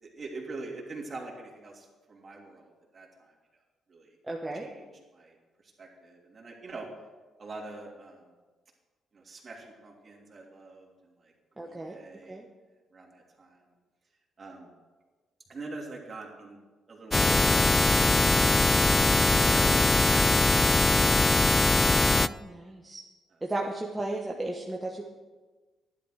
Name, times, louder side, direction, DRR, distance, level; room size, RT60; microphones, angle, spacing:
voice 1, 0.0-3.3 3.9-4.1 4.6-5.4 5.8-6.9 7.4-8.3 9.1-12.4 12.9-13.6 14.4-14.7 15.5-16.6 16.9-18.9 19.4-20.9 22.5-22.6 23.3-23.4, right 3 dB, 35° right, -1 dB, 3.1 m, -43 dB
voice 2, 4.3-4.7 11.6-12.0 12.3-12.4 22.2-23.0 23.4-25.0, right 2 dB, 15° right, -1 dB, 1.3 m, -34 dB
sound 1, 17.1-22.3, left 2 dB, 20° left, 0.3 m, -22 dB
12.5 x 11.0 x 4.9 m, 1.3 s
cardioid pair, 90°, 0 cm